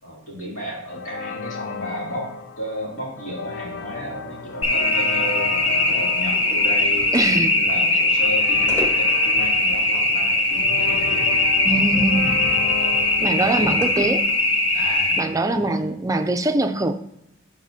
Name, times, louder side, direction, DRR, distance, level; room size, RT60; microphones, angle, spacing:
voice 1, 0.0-11.9 13.2-13.8 14.7-15.8, equal, 75° left, -4 dB, 2.6 m, -34 dB
sound 1, 0.9-14.7, left 5 dB, 60° left, 0.4 m, -35 dB
sound 2, 3.8-11.5 11.8-11.9 12.7-14.3, left 1 dB, 15° left, 1.5 m, -39 dB
sound 3, 4.6-15.2, left 2 dB, 30° left, 0.7 m, -20 dB
voice 2, 7.1-7.5 11.6-12.4 13.2-14.2 15.2-16.9, right 2 dB, 15° right, 7 dB, 0.4 m, -22 dB
11.0 x 4.1 x 2.7 m, 0.83 s
head